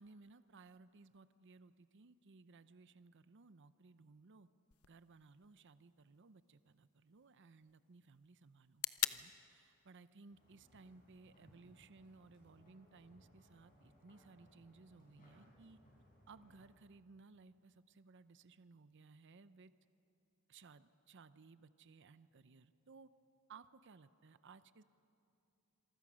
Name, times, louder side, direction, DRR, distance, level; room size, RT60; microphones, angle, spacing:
voice 1, 0.0-4.5 4.9-8.8 9.1-15.8 16.3-19.7 20.5-23.1 23.5-24.8, right 4 dB, 55° right, 14 dB, 0.6 m, -61 dB
sound 1, 4.7-12.7, left 15 dB, 70° left, 0.6 m, -48 dB
sound 2, 10.3-16.7, equal, 40° left, 7.3 m, -67 dB
26.5 x 23.5 x 6.3 m, 2.7 s
head